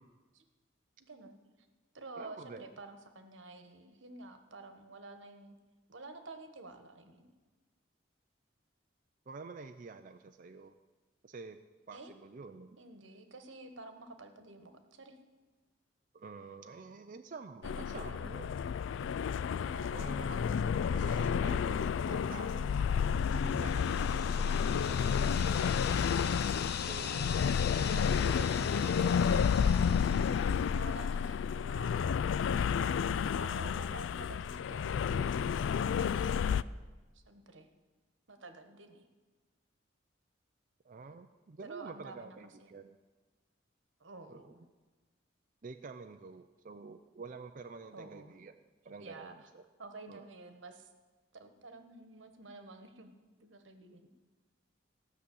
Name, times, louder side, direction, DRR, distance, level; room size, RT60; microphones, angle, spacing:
voice 1, 1.0-1.4 1.9-5.6 5.9-7.3 11.9-12.1 12.8-15.2 17.6-18.3 19.6-20.2 27.1-27.4 28.2-29.9 30.7-32.9 33.4-35.6 35.9-36.7 37.1-37.7 38.3-39.1 41.6-42.7 44.0-44.6 47.9-48.3 49.0-49.5 49.8-50.9 51.3-53.1 53.4-54.1, right 2 dB, 85° right, 7 dB, 1.3 m, -50 dB
voice 2, 2.2-2.7 9.3-10.8 11.2-11.6 11.9-12.8 16.1-18.5 19.9-22.8 23.3-26.4 26.9-27.3 27.8-29.7 40.8-43.0 44.3-44.4 45.6-48.5 48.8-49.6 50.1-50.2, right 4 dB, 45° right, 6 dB, 0.5 m, -48 dB
sound 1, 17.6-36.6, left 7 dB, 80° left, 0.3 m, -31 dB
sound 2, 23.0-30.8, left 8 dB, 60° left, 0.7 m, -43 dB
15.5 x 6.1 x 8.4 m, 1.3 s
head